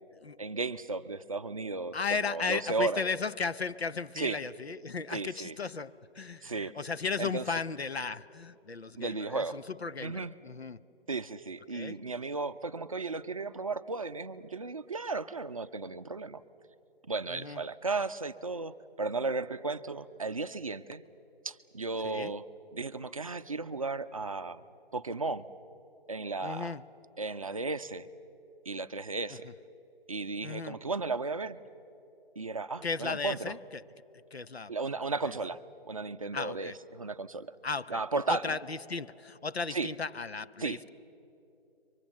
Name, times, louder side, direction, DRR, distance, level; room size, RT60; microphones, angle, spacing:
voice 1, 0.4-3.0 4.2-4.4 5.1-5.5 6.4-6.8 7.2-7.4 9.0-9.6 10.0-10.3 11.1-16.4 17.1-21.0 21.4-22.4 22.7-24.6 24.9-25.5 26.1-26.7 27.2-28.1 28.7-29.5 30.1-31.6 32.4-33.5 34.7-35.6 35.8-37.5 37.9-38.6 39.7-39.9 40.6-40.8, right 3 dB, 35° right, 0.5 m, -34 dB
voice 2, 1.9-10.8 11.7-12.0 17.3-17.6 22.0-22.3 26.4-26.9 30.4-30.8 32.8-33.8 34.3-34.7 35.2-35.4 36.3-36.7 37.6-40.9, left 4 dB, 85° left, 0.8 m, -35 dB
28.0 x 24.0 x 7.3 m
figure-of-eight pair, 150°, 31 cm